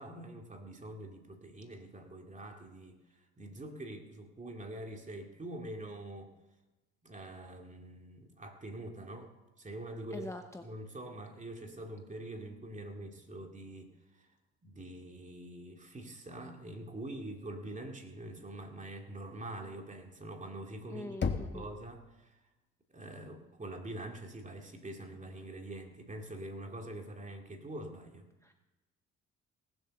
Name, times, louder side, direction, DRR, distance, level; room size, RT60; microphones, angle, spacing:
voice 1, 0.0-6.3 7.0-10.4 10.6-14.3 14.6-22.4 22.9-28.3, right 1 dB, 25° right, 2 dB, 2.6 m, -45 dB
voice 2, 10.1-10.6 20.9-21.6 28.4-28.5, left 2 dB, 10° left, 5 dB, 0.9 m, -43 dB
Knock, 21.2-22.1, left 5 dB, 40° left, 1.3 m, -35 dB
18.0 x 7.9 x 6.6 m, 1.0 s
cardioid pair, 90°, 30 cm